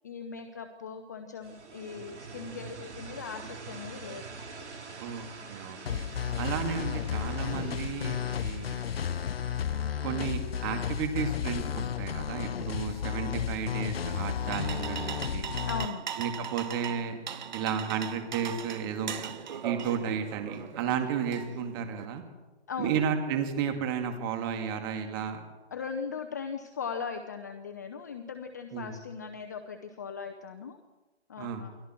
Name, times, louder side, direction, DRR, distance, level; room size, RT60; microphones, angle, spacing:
voice 1, 0.0-4.3 15.7-16.0 22.7-22.9 25.7-30.8 31.3-31.7, left 6 dB, 15° left, 6 dB, 0.6 m, -39 dB
sound 1, 1.4-12.1, right 4 dB, 75° right, 4.1 m, -46 dB
voice 2, 5.0-6.0 6.4-8.8 10.0-15.5 16.2-17.2 17.5-19.3 19.6-22.2 22.8-25.4 28.7-29.0 31.4-31.6, right 7 dB, 20° right, 5 dB, 2.2 m, -33 dB
sound 2, 5.9-15.9, left 8 dB, 60° left, 0.7 m, -33 dB
sound 3, 14.1-22.1, right 8 dB, 40° right, 1.4 m, -40 dB
28.5 x 22.5 x 4.5 m, 1.2 s
hypercardioid pair, 160°, 34 cm